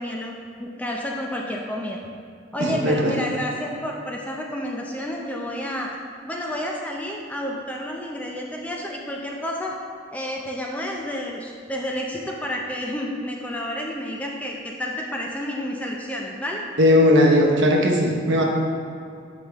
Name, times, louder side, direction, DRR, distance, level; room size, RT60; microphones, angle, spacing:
voice 1, 0.0-2.0 2.5-5.9 6.3-9.8 10.1-16.6, left 1 dB, 5° left, -1 dB, 0.4 m, -30 dB
voice 2, 2.6-3.1 16.8-18.4, left 1 dB, 60° right, 0 dB, 0.9 m, -18 dB
7.5 x 5.0 x 3.5 m, 2.4 s
head